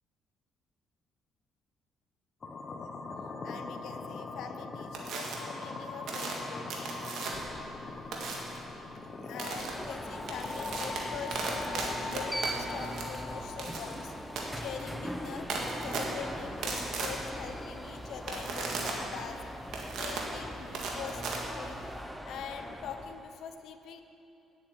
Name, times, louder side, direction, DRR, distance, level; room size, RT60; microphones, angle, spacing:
sound 1, 2.4-16.4, left 3 dB, 35° left, 1.0 m, -42 dB
voice 1, 2.6-2.9 3.4-6.7 9.2-14.1 14.5-15.5 15.8-19.4 20.0-21.8 22.2-24.0, left 7 dB, 75° left, 8 dB, 0.7 m, -43 dB
sound 2, 4.9-5.4 6.1-7.6 8.1-8.6 9.4-9.7 10.1-22.0, right 3 dB, 75° right, 1.9 m, -37 dB
Alarm, 9.4-23.3, equal, ahead, 0.7 m, -41 dB
10.0 x 8.3 x 7.3 m, 2.8 s
cardioid pair, 115°, 0 cm